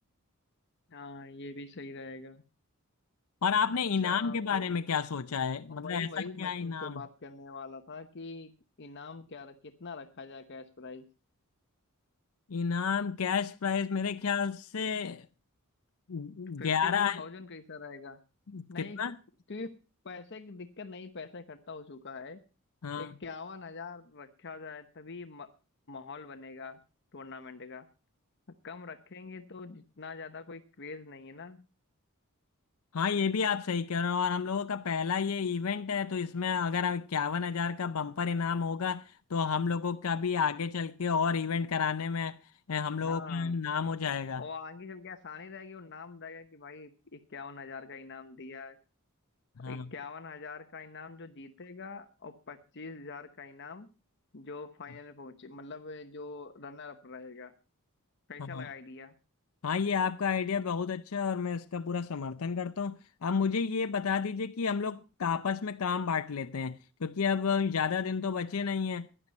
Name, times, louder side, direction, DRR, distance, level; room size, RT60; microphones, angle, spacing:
voice 1, 0.9-2.4 4.0-4.7 5.7-8.5 8.8-11.1 16.6-18.2 18.7-19.0 19.5-19.8 20.0-22.4 23.0-25.5 25.9-26.8 27.1-27.9 28.6-31.7 43.0-43.6 44.4-48.8 49.7-53.9 54.3-57.5 58.3-59.1, left 4 dB, 55° left, 1.0 m, -44 dB
voice 2, 3.4-7.0 12.5-15.3 16.1-17.2 18.5-19.2 22.8-23.1 32.9-42.4 42.7-44.4 49.6-49.9 58.4-58.7 59.6-69.1, left 6 dB, 85° left, 0.6 m, -31 dB
16.5 x 11.0 x 4.2 m
head